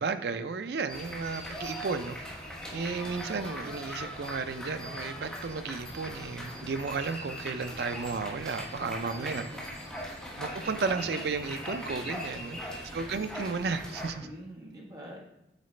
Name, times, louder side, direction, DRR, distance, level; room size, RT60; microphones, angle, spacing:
voice 1, 0.0-2.2 2.7-9.4 10.4-12.6 12.9-14.3, right 4 dB, 65° right, 10 dB, 0.4 m, -33 dB
sound 1, 0.9-14.1, equal, 5° left, 1.3 m, -40 dB
voice 2, 8.7-9.6 12.3-12.7 14.2-15.3, equal, 20° right, -3 dB, 1.4 m, -46 dB
8.2 x 3.9 x 3.2 m, 0.84 s
head